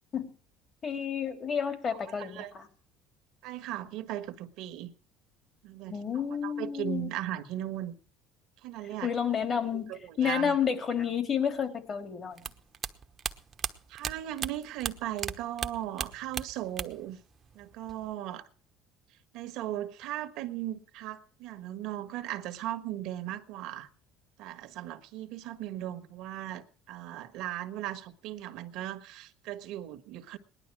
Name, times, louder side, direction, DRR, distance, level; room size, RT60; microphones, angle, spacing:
voice 1, 0.8-2.7 5.9-7.1 9.0-9.9 10.2-12.5, left 7 dB, 40° left, 3.4 m, -30 dB
voice 2, 2.2-2.5 3.4-4.9 5.6-7.9 8.6-9.1 9.7-10.5 13.9-17.2 17.5-18.5 19.3-23.9 24.4-30.4, right 13 dB, 70° right, 1.5 m, -37 dB
sound 1, 12.4-15.3 15.6-17.1 17.4-18.1, right 6 dB, 35° right, 1.1 m, -35 dB
19.0 x 11.5 x 4.8 m
supercardioid pair, 100°, 0 cm